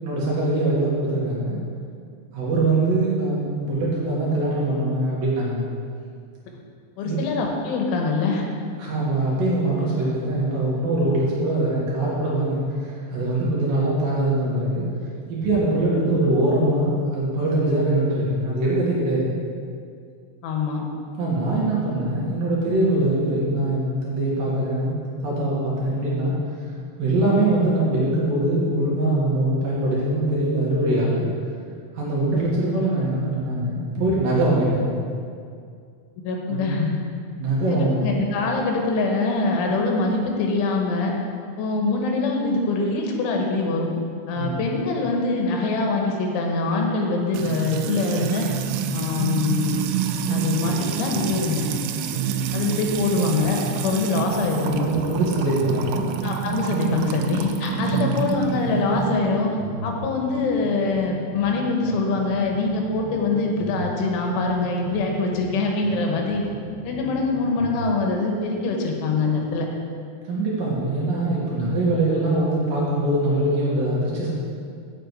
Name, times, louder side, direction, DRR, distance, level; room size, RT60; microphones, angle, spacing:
voice 1, 0.0-1.6 2.3-5.6 7.0-7.2 8.8-14.8 15.3-19.4 21.2-26.3 27.0-31.3 31.9-35.0 36.5-36.7 37.4-38.0 44.3-44.6 54.8-56.1 57.8-58.1 70.2-74.3, right 2 dB, 60° right, -6 dB, 2.8 m, -23 dB
voice 2, 7.0-8.5 20.4-20.9 36.3-36.9 37.7-41.1 41.6-43.9 44.3-48.5 48.9-49.8 50.3-51.7 52.5-55.1 56.2-59.6 59.8-66.5 66.9-69.7, left 3 dB, 85° left, 1 dB, 3.7 m, -24 dB
Music / Water tap faucet / Trickle dribble, 47.3-59.1, right 8 dB, 85° right, 2.9 m, -28 dB
sound 1, 52.1-53.5 53.8-57.5 57.8-61.5 61.8-65.5 65.8-67.9, left 1 dB, 40° left, 2.8 m, -37 dB
7.7 x 6.7 x 8.1 m, 2.3 s
omnidirectional pair, 5.4 m